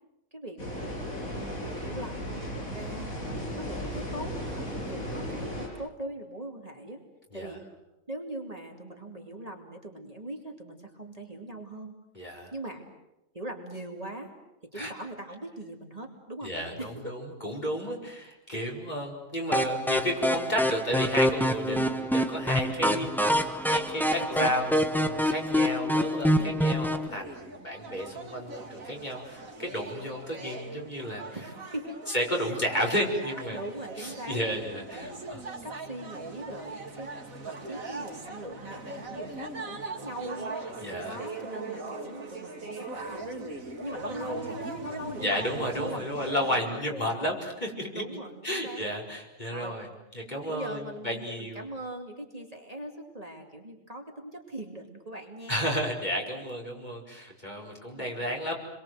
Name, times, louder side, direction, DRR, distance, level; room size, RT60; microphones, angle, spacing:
voice 1, 0.3-1.4 1.7-2.4 2.7-7.0 7.3-7.6 8.1-11.9 12.5-12.8 13.3-14.3 14.7-16.5 16.8-17.2 21.6-21.9 24.3-24.5 26.4-26.8 31.3-32.0 33.5-34.4 34.9-35.2 35.6-37.1 37.4-40.6 41.1-47.1 47.9-48.8 49.5-49.7 50.4-55.7 58.0-58.2, right 1 dB, 25° right, 2 dB, 2.7 m, -41 dB
sound 1, 0.6-5.7, equal, 90° left, 7.4 m, -35 dB
voice 2, 12.1-12.5 14.7-14.9 16.4-31.4 32.1-33.6 34.0-35.4 40.7-41.2 45.2-48.0 48.4-49.9 50.1-51.6 55.5-58.5, equal, 30° left, -1 dB, 4.8 m, -32 dB
sound 2, 19.5-27.1, equal, ahead, 1.2 m, -26 dB
sound 3, 27.1-46.6, right 2 dB, 80° right, 3.0 m, -40 dB
30.0 x 23.0 x 7.8 m, 0.91 s
omnidirectional pair, 1.4 m